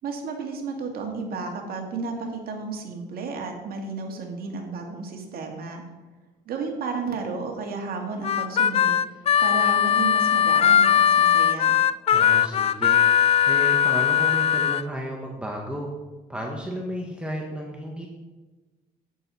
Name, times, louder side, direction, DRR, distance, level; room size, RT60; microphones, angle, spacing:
voice 1, 0.0-5.8 6.5-11.8, right 4 dB, 60° right, 2 dB, 2.2 m, -32 dB
Harmonica, 8.2-14.8, left 9 dB, 35° left, 0.4 m, -19 dB
voice 2, 12.1-13.1 13.5-15.9 16.3-18.1, right 1 dB, 5° right, 0 dB, 1.5 m, -33 dB
11.0 x 9.1 x 4.3 m, 1.2 s
cardioid pair, 110°, 17 cm